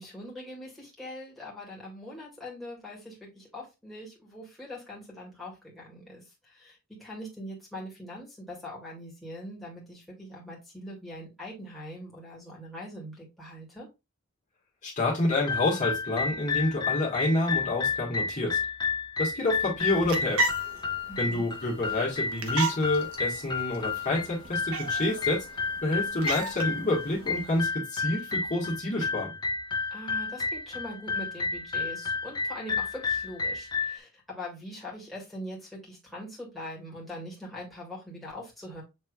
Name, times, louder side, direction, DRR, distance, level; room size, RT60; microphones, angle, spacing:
voice 1, 0.0-13.9 21.1-21.4 29.9-38.8, left 1 dB, ahead, -5 dB, 2.0 m, -42 dB
voice 2, 14.8-18.6 19.2-20.4 21.2-25.4 25.8-29.3, left 2 dB, 35° left, -5 dB, 1.5 m, -28 dB
sound 1, 15.3-34.0, left 5 dB, 20° left, 0.4 m, -32 dB
sound 2, 19.8-27.6, right 2 dB, 80° right, 1.0 m, -36 dB
6.6 x 3.3 x 2.3 m, 0.25 s
head